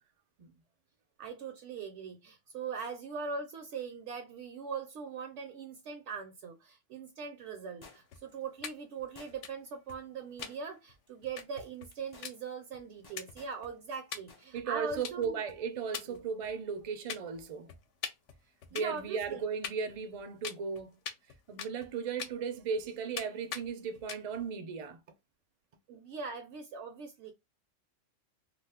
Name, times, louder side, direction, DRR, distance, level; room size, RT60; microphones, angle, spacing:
voice 1, 1.2-15.4 16.1-16.2 18.7-19.4 25.9-27.3, right 5 dB, 70° right, 0.8 m, -41 dB
sound 1, 7.8-8.3 9.2-9.7 10.4-10.9 11.2-11.4 11.9-12.3 13.0-13.6 14.3-14.5 14.8-14.9, left 3 dB, 30° left, 0.5 m, -55 dB
sound 2, 8.1-8.7 9.0-9.1 9.3-9.5 9.9-10.0 10.4-10.5 10.9-11.0 11.2-12.0 12.2-12.3 12.7-12.8 13.2-13.7 14.1-14.2 14.6-15.6 15.9-16.8 17.1-17.4 17.7-19.4 19.6-20.2 20.4-21.9 22.2-22.8 23.2-23.3 23.5-23.7 23.9-24.4, left 7 dB, 75° left, 0.9 m, -42 dB
voice 2, 14.5-17.7 18.7-21.0 21.5-25.0, right 6 dB, 50° right, 0.4 m, -36 dB
2.4 x 2.4 x 3.4 m
omnidirectional pair, 1.3 m